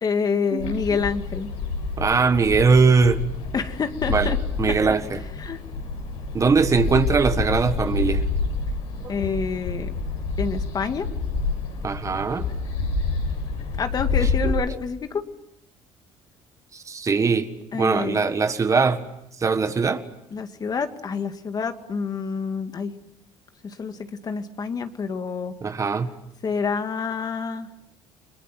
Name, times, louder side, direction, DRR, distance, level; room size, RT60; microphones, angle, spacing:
voice 1, 0.0-1.5 3.5-4.4 5.4-5.6 9.1-9.9 10.4-11.1 13.8-15.3 17.7-18.3 20.3-22.9 23.6-25.5 26.4-27.7, left 5 dB, 40° left, 8 dB, 2.2 m, -27 dB
sound 1, 0.6-14.5, left 4 dB, 80° left, 7.9 m, -28 dB
voice 2, 2.0-3.2 4.1-4.3 4.6-5.2 6.3-8.2 11.8-12.5 14.2-14.6 16.7-19.0 19.4-20.0 25.6-26.1, right 4 dB, 30° right, 10 dB, 1.6 m, -21 dB
30.0 x 22.0 x 7.6 m, 0.80 s
cardioid pair, 95°, 11 cm